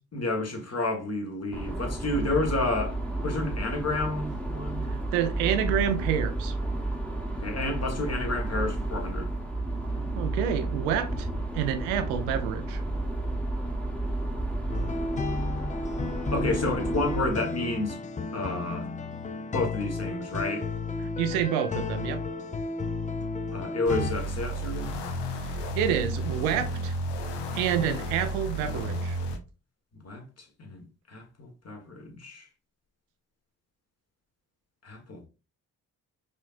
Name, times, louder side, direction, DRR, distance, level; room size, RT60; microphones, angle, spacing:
voice 1, 0.1-4.9 7.3-9.3 16.3-18.0 18.3-18.9 19.5-20.7 23.5-25.0 30.0-30.2 30.6-32.5 34.8-35.3, left 2 dB, 35° left, 1.5 m, -30 dB
sound 1, 1.5-17.3, right 2 dB, 5° left, 1.1 m, -32 dB
voice 2, 4.9-6.5 10.1-11.3 11.5-12.8 21.2-22.2 25.4-26.9 27.5-29.2, right 9 dB, 90° right, 0.6 m, -28 dB
sound 2, 14.7-24.1, left 3 dB, 20° left, 0.4 m, -33 dB
sound 3, 23.9-29.4, right 1 dB, 75° left, 0.8 m, -32 dB
4.8 x 2.7 x 2.5 m
hypercardioid pair, 45°, 42 cm